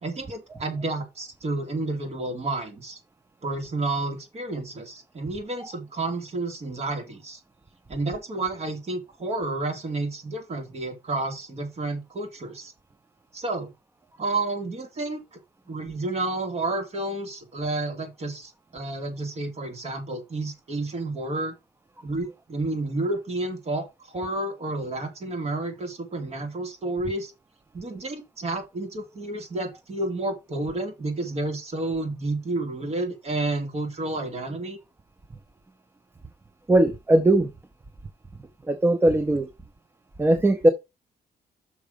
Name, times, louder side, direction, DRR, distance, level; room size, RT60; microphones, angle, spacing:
voice 1, 0.0-3.0 3.4-7.4 7.9-12.7 13.3-13.7 14.2-15.2 15.7-21.5 22.0-27.3 27.7-34.8, right 2 dB, 35° right, 2.7 m, -30 dB
voice 2, 36.7-37.5 38.7-39.5 40.2-40.7, right 1 dB, 10° right, 0.7 m, -19 dB
6.1 x 6.0 x 5.2 m
cardioid pair, 160°, 18 cm